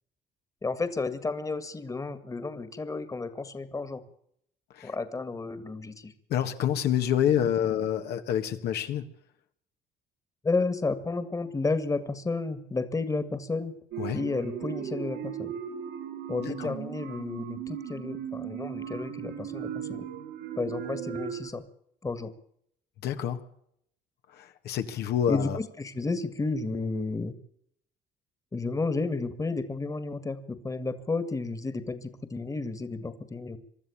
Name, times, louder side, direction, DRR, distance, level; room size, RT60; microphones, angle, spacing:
voice 1, 0.6-4.0 4.8-6.1 10.4-13.8 14.1-15.5 16.3-20.1 20.6-21.6 22.0-22.3 25.3-27.3 28.5-33.6, left 3 dB, 20° left, 13 dB, 1.8 m, -32 dB
voice 2, 6.3-9.0 14.0-14.2 16.4-16.7 23.0-23.4 24.3-25.6, left 9 dB, 75° left, 7 dB, 1.8 m, -28 dB
sound 1, 13.9-21.5, right 9 dB, 85° right, 5.6 m, -37 dB
24.0 x 12.5 x 8.6 m, 0.71 s
cardioid pair, 110°, 17 cm